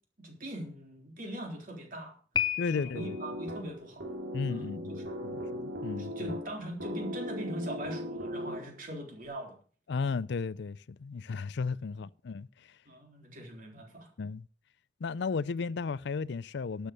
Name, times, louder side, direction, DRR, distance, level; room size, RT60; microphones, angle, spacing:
voice 1, 0.2-2.1 2.7-4.0 4.5-5.2 5.8-9.5 11.9-12.0 12.9-14.1, right 1 dB, 50° right, 3.8 m, -41 dB
Piano, 2.3-3.3, left 8 dB, 25° left, 1.0 m, -32 dB
voice 2, 2.6-3.2 4.3-6.3 9.9-12.5 14.2-14.4 15.0-16.9, left 4 dB, 65° left, 0.4 m, -34 dB
sound 1, 3.0-8.9, equal, 75° right, 2.8 m, -38 dB
12.0 x 8.0 x 6.6 m
head